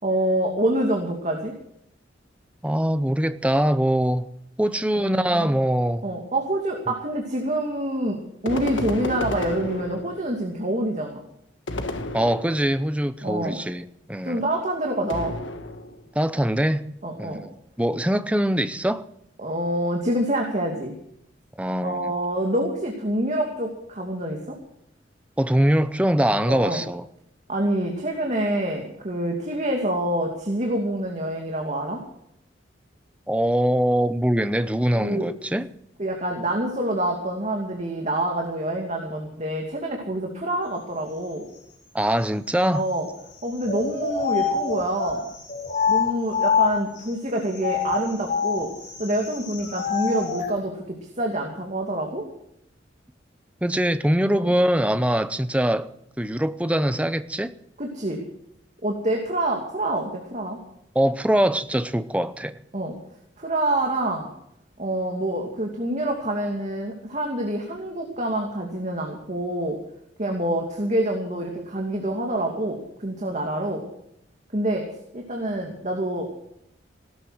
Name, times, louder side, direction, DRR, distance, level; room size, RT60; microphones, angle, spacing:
voice 1, 0.0-1.5 4.9-5.5 6.0-8.2 8.4-11.2 13.2-13.6 14.2-15.4 17.0-17.4 19.4-20.9 21.8-24.6 26.5-26.8 27.5-32.0 35.0-35.3 36.0-41.5 42.7-43.1 43.4-45.3 45.9-48.7 49.0-52.2 54.3-54.5 57.8-58.2 58.8-60.6 62.7-62.9 63.4-64.3 64.8-69.8 70.2-73.8 74.5-76.3, right 1 dB, 40° right, 1 dB, 2.5 m, -26 dB
voice 2, 2.6-4.3 4.6-6.0 12.1-14.4 16.1-16.8 17.2-19.0 21.6-22.1 25.4-27.1 33.3-35.7 41.9-42.8 53.6-55.9 56.2-57.5 60.9-62.6, right 1 dB, 5° right, 12 dB, 0.7 m, -23 dB
sound 1, 8.5-10.4 11.7-12.9 15.1-16.1, left 1 dB, 85° left, 1.5 m, -32 dB
sound 2, 43.6-47.0 47.5-50.5, left 6 dB, 45° left, 5.5 m, -26 dB
17.5 x 13.0 x 6.3 m, 0.75 s
head